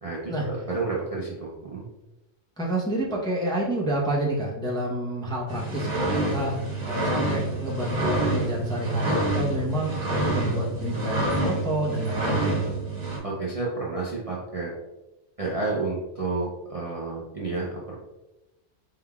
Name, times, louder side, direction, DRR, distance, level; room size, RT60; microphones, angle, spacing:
voice 1, 0.0-1.8 13.2-14.7 15.4-17.9, right 3 dB, 40° right, -5 dB, 0.6 m, -30 dB
voice 2, 2.6-12.8, right 1 dB, 5° left, -4 dB, 0.6 m, -29 dB
sound 1, 5.5-13.2, right 2 dB, 65° right, 1.6 m, -27 dB
4.4 x 3.7 x 2.3 m, 0.98 s
omnidirectional pair, 1.3 m